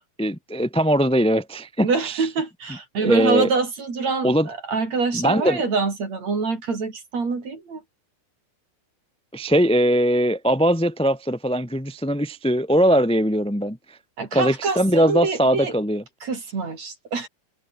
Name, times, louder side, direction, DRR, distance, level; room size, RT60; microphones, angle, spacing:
voice 1, 0.2-2.3 3.0-3.5 4.2-4.5 5.1-5.6 9.3-14.0 14.3-16.0, equal, ahead, 2.0 m, -21 dB
voice 2, 1.8-7.8 14.2-15.7 16.2-17.3, right 4 dB, 45° right, 5.7 m, -25 dB
omnidirectional pair, 4.2 m